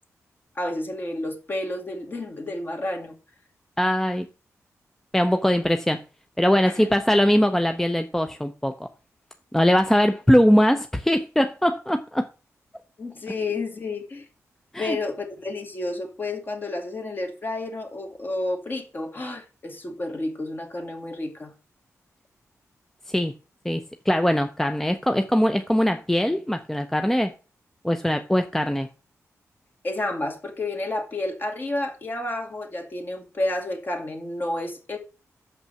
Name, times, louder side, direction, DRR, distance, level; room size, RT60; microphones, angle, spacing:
voice 1, 0.6-3.1 6.7-6.9 13.0-14.3 14.8-21.5 29.8-35.0, left 2 dB, 40° left, 2.3 m, -30 dB
voice 2, 3.8-4.3 5.1-6.0 6.4-8.9 9.5-12.3 14.7-15.0 23.1-23.3 23.6-27.3 27.8-28.9, equal, 5° left, 0.6 m, -21 dB
6.6 x 5.6 x 6.9 m
wide cardioid pair, 105°, 6 cm